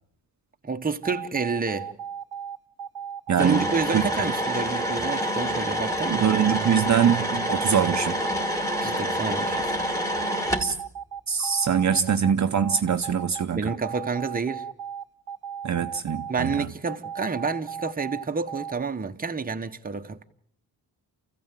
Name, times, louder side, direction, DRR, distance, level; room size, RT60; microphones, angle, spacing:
voice 1, 0.6-1.9 3.4-6.3 8.8-9.8 13.5-14.7 16.3-20.2, right 4 dB, 20° right, 1.1 m, -29 dB
sound 1, 1.0-18.8, right 8 dB, 70° right, 1.0 m, -36 dB
voice 2, 3.3-3.7 3.9-4.3 6.1-8.2 10.6-10.7 11.3-13.7 15.6-16.7, right 8 dB, 45° right, 0.8 m, -23 dB
sound 2, 3.4-10.7, equal, 10° left, 2.6 m, -27 dB
28.5 x 15.5 x 7.4 m
wide cardioid pair, 120°, 39 cm